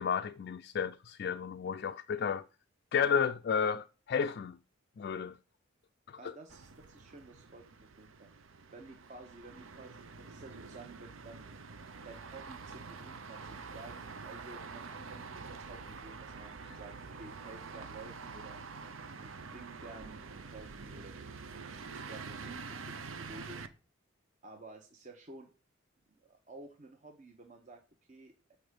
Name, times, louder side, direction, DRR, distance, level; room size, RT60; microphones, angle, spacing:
voice 1, 0.0-2.4 2.9-4.6 5.0-5.4 6.1-6.3, left 6 dB, 55° left, 0.4 m, -32 dB
voice 2, 6.2-8.3 8.7-11.4 12.0-18.6 19.2-23.7 24.4-25.5 26.2-27.8 28.1-28.6, right 3 dB, 40° right, 0.9 m, -52 dB
sound 1, 6.5-23.7, right 4 dB, 80° right, 0.7 m, -47 dB
7.9 x 4.5 x 5.1 m
head